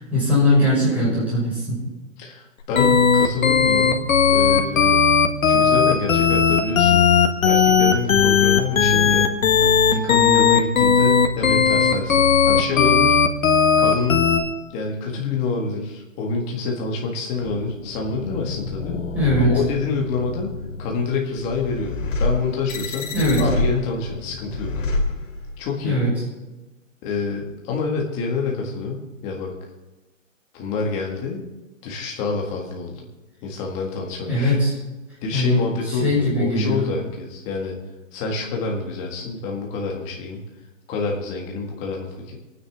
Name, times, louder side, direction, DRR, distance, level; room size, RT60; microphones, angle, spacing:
voice 1, 0.0-1.8 19.1-19.6 23.1-23.4 25.8-26.1 34.3-34.7 35.3-35.6 35.9-36.9, left 1 dB, 5° right, -9 dB, 5.7 m, -20 dB
voice 2, 2.2-4.0 4.3-5.0 5.5-7.1 7.4-9.2 9.6-13.2 13.8-14.3 14.7-19.0 19.4-20.5 20.8-21.9 22.2-23.1 23.4-24.7 25.6-26.1 27.0-29.5 30.5-31.4 31.8-33.0 33.4-34.6 35.2-37.7 38.1-40.4 40.9-42.3, left 4 dB, 15° left, -1 dB, 1.8 m, -27 dB
sound 1, 2.8-14.4, left 6 dB, 85° left, 1.7 m, -16 dB
sound 2, 17.4-25.8, left 3 dB, 70° left, 2.6 m, -28 dB
25.5 x 9.7 x 3.6 m, 1.1 s
hypercardioid pair, 170°, 39 cm